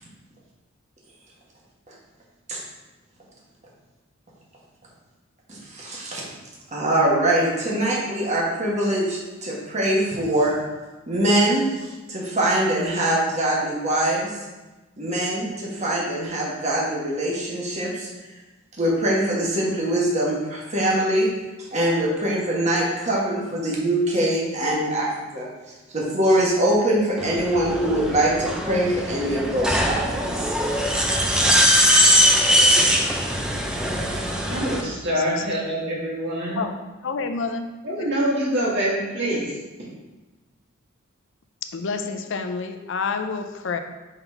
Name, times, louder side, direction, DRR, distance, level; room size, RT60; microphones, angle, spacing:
voice 1, 5.5-6.2 6.7-10.6 11.1-14.3 15.0-18.1 18.8-21.3 21.7-25.1 25.3-25.5 25.9-30.2, right 1 dB, 35° right, -4 dB, 1.4 m, -23 dB
sound 1, 27.2-34.8, equal, 5° right, 0.5 m, -21 dB
voice 2, 34.5-36.6 37.8-39.5, right 1 dB, 55° right, -6 dB, 2.0 m, -25 dB
voice 3, 35.1-35.5 36.6-36.8 37.0-38.1 41.7-43.8, left 4 dB, 65° left, 7 dB, 0.5 m, -29 dB
5.5 x 4.0 x 4.5 m, 1.2 s
head